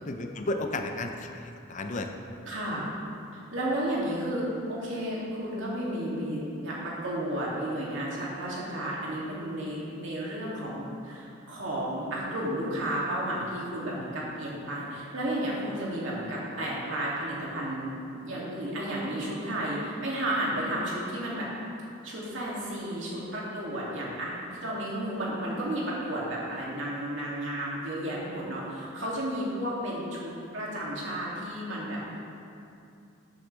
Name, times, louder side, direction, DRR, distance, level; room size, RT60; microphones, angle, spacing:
voice 1, 0.0-2.1, left 2 dB, 40° left, 5 dB, 0.6 m, -33 dB
voice 2, 2.5-2.9 3.5-17.9 18.2-21.5 22.0-32.0, right 1 dB, 65° right, -6 dB, 2.6 m, -32 dB
13.5 x 8.3 x 3.4 m, 2.6 s
head